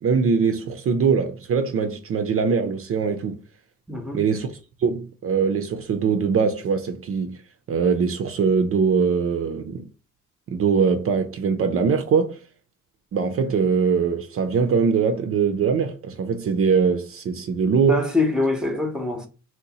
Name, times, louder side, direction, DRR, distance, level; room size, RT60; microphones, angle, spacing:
voice 1, 0.0-3.4 4.1-4.5 4.8-7.4 7.7-9.8 10.5-12.4 13.1-18.0, right 5 dB, 50° right, 0.5 m, -22 dB
voice 2, 3.9-4.2 17.9-19.3, left 2 dB, 5° right, 0.7 m, -24 dB
2.7 x 2.1 x 4.0 m
cardioid pair, 90°, 30 cm